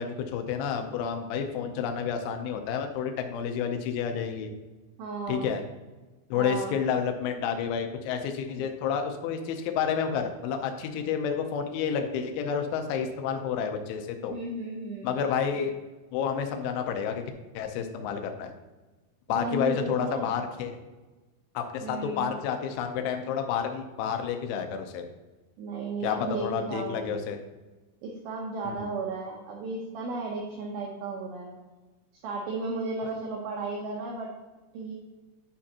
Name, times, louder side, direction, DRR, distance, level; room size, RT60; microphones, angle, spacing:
voice 1, 0.0-4.5 5.3-5.6 6.3-14.4 15.0-15.8 16.1-17.2 17.5-18.5 19.3-20.8 21.5-25.0 26.0-27.4 28.7-28.9, left 7 dB, 85° left, 5 dB, 3.1 m, -30 dB
voice 2, 5.0-5.5 6.4-6.8 14.3-15.1 19.3-20.3 21.8-22.4 25.6-27.3 28.0-31.5 32.2-34.3 34.7-34.9, right 3 dB, 80° right, -1 dB, 2.2 m, -34 dB
9.6 x 6.3 x 2.9 m, 1.2 s
omnidirectional pair, 5.4 m